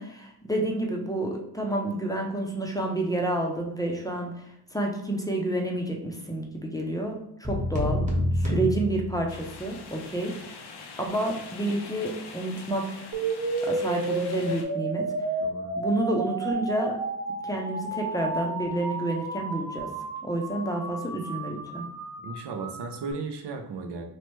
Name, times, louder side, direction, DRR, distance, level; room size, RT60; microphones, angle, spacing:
voice 1, 0.0-4.3 4.7-8.0 8.3-10.6 11.0-13.1 13.7-15.0 15.8-17.0 17.4-19.9 20.2-21.8, right 1 dB, 10° left, 0 dB, 0.5 m, -29 dB
sound 1, 7.4-9.7, left 1 dB, 20° right, 1.0 m, -28 dB
sound 2, 9.3-14.6, left 4 dB, 80° left, 0.6 m, -44 dB
sound 3, 13.1-23.1, right 3 dB, 45° right, 0.7 m, -32 dB
voice 2, 15.4-15.8 22.2-24.0, right 4 dB, 80° right, 4 dB, 0.5 m, -35 dB
3.1 x 2.1 x 3.0 m, 0.78 s
wide cardioid pair, 60°, 40 cm